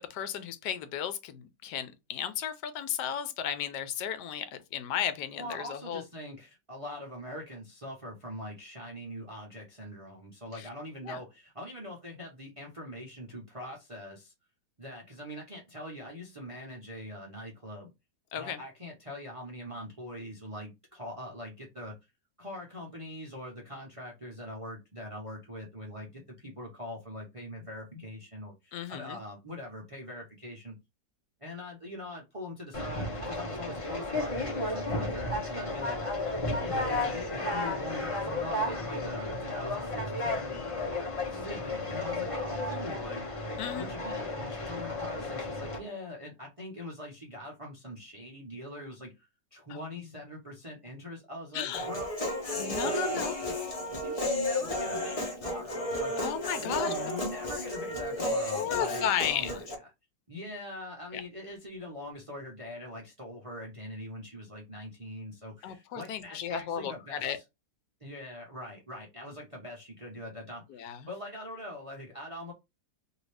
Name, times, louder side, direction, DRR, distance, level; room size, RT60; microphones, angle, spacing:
voice 1, 0.0-6.0 10.5-10.6 11.0-11.2 18.3-18.6 28.7-29.2 43.6-43.9 49.7-50.1 51.5-51.9 52.6-53.3 56.2-56.9 58.5-59.6 61.1-61.2 65.6-67.4 70.7-71.1, left 9 dB, 75° left, 1.2 m, -34 dB
voice 2, 5.3-14.3 14.8-17.9 18.3-21.9 22.4-30.8 31.4-36.0 36.5-40.6 41.3-43.3 43.8-52.2 52.6-53.2 54.0-56.1 56.6-59.6 60.3-67.4 68.0-72.5, left 1 dB, 40° right, 0.4 m, -43 dB
Conversation, 32.7-45.8, left 2 dB, 25° left, 0.9 m, -33 dB
Human voice, 51.7-59.8, left 1 dB, 40° left, 0.5 m, -33 dB
2.7 x 2.7 x 3.2 m
omnidirectional pair, 1.8 m